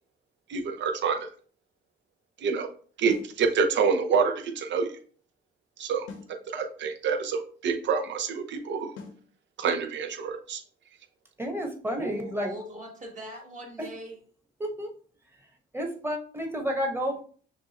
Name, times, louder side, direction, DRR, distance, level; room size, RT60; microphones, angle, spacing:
voice 1, 0.5-1.3 2.4-2.7 3.0-4.9 5.8-6.1 6.5-8.9 9.6-10.6, right 5 dB, 65° right, 4 dB, 0.7 m, -27 dB
sound 1, 3.1-3.4 6.1-6.4 9.0-9.3, left 4 dB, 90° left, 0.9 m, -43 dB
voice 2, 11.4-12.5 13.8-13.9 14.6-14.9 15.7-17.2, equal, 10° right, 3 dB, 1.2 m, -31 dB
voice 3, 12.0-14.2, right 1 dB, 40° right, 0 dB, 1.6 m, -39 dB
6.0 x 2.4 x 2.9 m, 0.44 s
cardioid pair, 90°, 20 cm